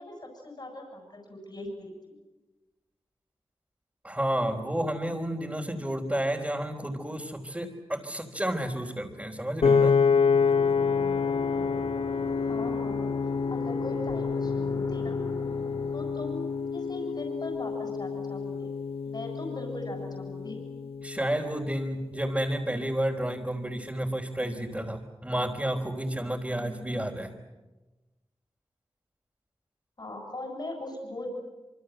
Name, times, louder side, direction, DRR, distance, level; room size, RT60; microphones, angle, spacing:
voice 1, 0.0-2.2 12.5-13.1 13.5-15.2 15.9-18.7 19.1-20.7 30.0-31.3, left 1 dB, 50° left, 1 dB, 7.3 m, -40 dB
voice 2, 4.0-9.9 21.0-27.3, right 1 dB, 15° right, -3 dB, 3.8 m, -31 dB
Piano, 9.6-21.9, left 5 dB, 75° left, 0.9 m, -28 dB
sound 1, 10.3-17.9, left 1 dB, 30° left, 5.1 m, -41 dB
26.5 x 24.5 x 8.0 m, 1.1 s
cardioid pair, 45°, 10 cm